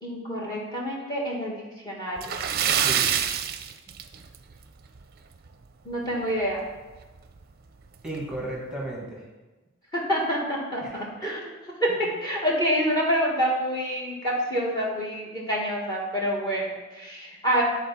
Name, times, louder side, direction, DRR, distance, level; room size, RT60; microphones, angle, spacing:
voice 1, 0.0-2.4 5.8-6.6 9.9-11.4 11.8-11.9 12.2-17.6, equal, 20° left, -3 dB, 1.6 m, -27 dB
Splash splatter, 2.2-4.5 4.9-5.0 5.5-5.6 7.0-7.1 7.4-7.5 8.1-8.4, right 9 dB, 45° right, 0.5 m, -26 dB
voice 2, 2.7-3.3 8.0-9.2 10.8-11.3, right 1 dB, 5° right, -4 dB, 1.6 m, -35 dB
10.5 x 4.3 x 5.7 m, 1.2 s
head